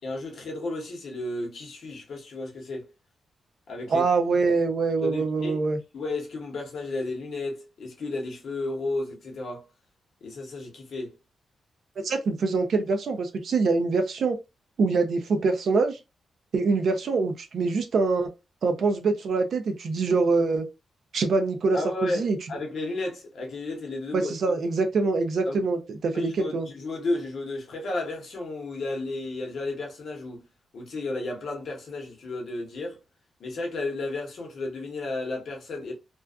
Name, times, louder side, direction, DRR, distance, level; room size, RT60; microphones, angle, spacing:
voice 1, 0.0-2.9 3.7-4.1 5.0-5.6 5.9-9.6 10.2-11.1 21.7-24.3 25.5-25.7 26.1-30.4 30.7-33.0 33.4-35.9, left 2 dB, 50° left, 0.8 m, -33 dB
voice 2, 3.9-5.8 12.0-14.4 14.8-16.0 16.5-18.3 18.6-20.6 21.1-22.4 24.1-26.7, right 4 dB, 50° right, 0.4 m, -24 dB
2.4 x 2.2 x 2.3 m
wide cardioid pair, 180°, 0 cm